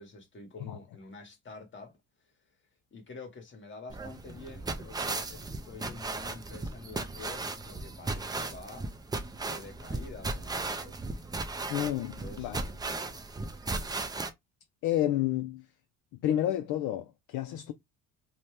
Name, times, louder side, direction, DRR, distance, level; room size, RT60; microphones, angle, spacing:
voice 1, 0.0-2.3 2.9-8.9 9.4-11.0 12.2-12.6, left 3 dB, 30° left, 1.3 m, -48 dB
sound 1, 3.9-14.3, right 3 dB, 10° right, 0.4 m, -36 dB
voice 2, 11.7-12.6 14.8-15.6 16.2-17.7, left 12 dB, 60° left, 0.5 m, -30 dB
2.8 x 2.2 x 3.2 m
cardioid pair, 105°, 37 cm